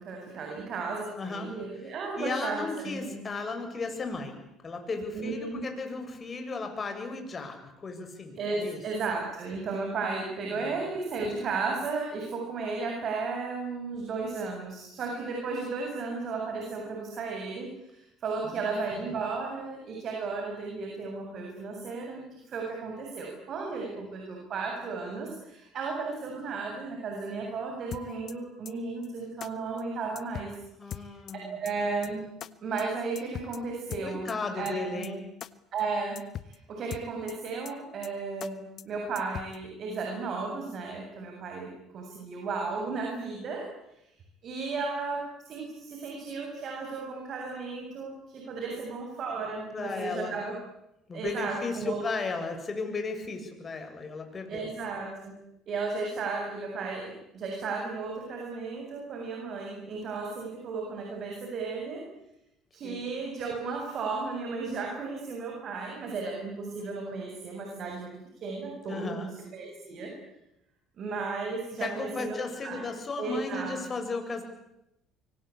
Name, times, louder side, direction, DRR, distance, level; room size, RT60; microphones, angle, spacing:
voice 1, 0.0-3.1 5.1-5.6 8.4-30.5 30.8-31.1 31.4-32.3 32.6-34.3 34.5-35.1 35.7-43.7 44.4-50.6 51.1-52.0 54.5-55.4 55.7-62.1 62.7-70.1 71.0-72.8 73.2-73.8, right 4 dB, 55° right, 1 dB, 7.8 m, -34 dB
voice 2, 1.2-1.5 2.2-8.8 10.5-10.6 18.4-19.1 30.8-31.6 34.0-35.2 48.7-48.8 49.7-50.3 51.1-54.7 62.8-63.1 68.9-69.3 71.8-74.4, left 3 dB, 35° left, 5 dB, 7.8 m, -35 dB
sound 1, 27.9-28.3 28.6-28.7 29.0-29.1 29.4-29.5 29.8-29.9 30.1-30.6 30.9-31.3 31.6-31.7 32.0-32.1 32.4-32.5 32.8-32.9 33.1-33.6 33.9-34.3 34.6-34.7 35.0-35.1 35.4-35.5 35.8-35.9 36.1-36.6 36.9-37.3 37.6-37.7 38.0-38.1 38.4-38.5 38.8-38.9 39.1-39.6, left 10 dB, 55° left, 1.3 m, -40 dB
25.0 x 24.5 x 8.7 m, 0.84 s
supercardioid pair, 70°, 0 cm